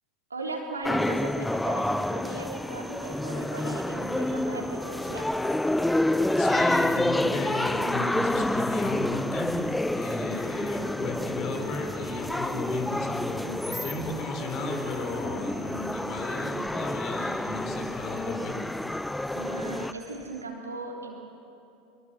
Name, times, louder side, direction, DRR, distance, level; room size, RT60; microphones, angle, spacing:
voice 1, 0.3-5.3 19.3-21.1, right 2 dB, 85° right, 0 dB, 3.4 m, -37 dB
sound 1, 0.8-19.9, left 1 dB, 5° left, 0.6 m, -28 dB
sound 2, 1.0-20.4, right 4 dB, 20° right, 1.5 m, -52 dB
voice 2, 6.4-9.6 9.9-18.6, left 3 dB, 45° left, 4 dB, 4.6 m, -34 dB
24.5 x 23.0 x 7.4 m, 2.8 s
figure-of-eight pair, 75°, 0 cm